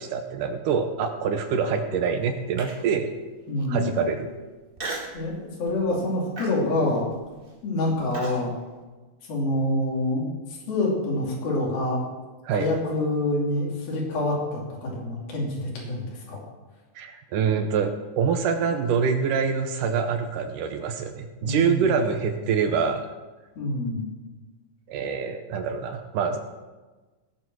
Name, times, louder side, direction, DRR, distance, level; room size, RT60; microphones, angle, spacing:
voice 1, 0.0-3.1 3.7-4.3 12.5-12.7 17.0-23.1 24.9-26.4, right 6 dB, 75° right, 7 dB, 2.3 m, -25 dB
Human voice, 2.6-3.0 3.6-3.7 4.8-5.2 5.7-5.9 6.4-8.4, right 3 dB, 45° right, 0.6 m, -36 dB
voice 2, 3.5-4.0 5.1-7.0 7.6-8.5 9.3-10.3 10.7-12.0 12.6-16.4 21.4-21.8 23.6-24.1, left 1 dB, 85° left, -4 dB, 4.7 m, -26 dB
18.0 x 7.7 x 6.2 m, 1.2 s
omnidirectional pair, 4.1 m